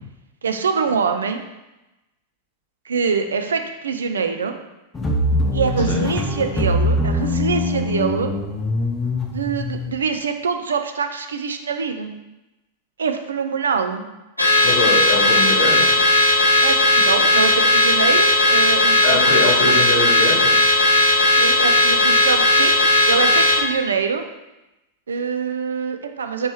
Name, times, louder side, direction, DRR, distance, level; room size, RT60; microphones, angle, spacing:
voice 1, 0.4-1.4 2.9-4.6 5.5-8.3 9.3-12.1 13.0-14.0 16.6-19.8 21.4-24.2 25.1-26.5, right 5 dB, 70° right, 7 dB, 0.3 m, -24 dB
sound 1, 4.9-9.9, left 1 dB, 15° left, 0.6 m, -22 dB
Car / Alarm, 14.4-23.6, left 2 dB, 85° left, 0.6 m, -16 dB
voice 2, 14.6-15.9 19.0-20.6, left 2 dB, 55° left, -2 dB, 1.2 m, -23 dB
4.3 x 3.2 x 3.1 m, 0.98 s
figure-of-eight pair, 90°, 0 cm